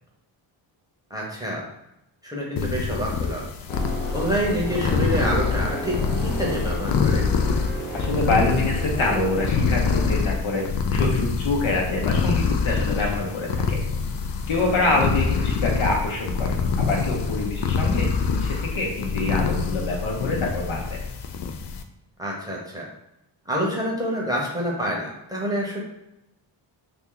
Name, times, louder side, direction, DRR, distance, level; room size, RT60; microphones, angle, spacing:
voice 1, 1.1-1.7 2.2-3.5 4.1-7.3 14.6-15.0 22.2-22.9 23.5-25.8, equal, 10° right, -4 dB, 0.8 m, -27 dB
sound 1, 2.6-21.8, left 5 dB, 60° left, 0.5 m, -25 dB
sound 2, 3.7-10.1, right 1 dB, 20° left, 1.1 m, -34 dB
voice 2, 7.9-10.7 10.9-13.8 14.5-21.0, left 2 dB, 75° left, -1 dB, 1.0 m, -25 dB
2.8 x 2.7 x 3.7 m, 0.88 s
wide cardioid pair, 115°, 48 cm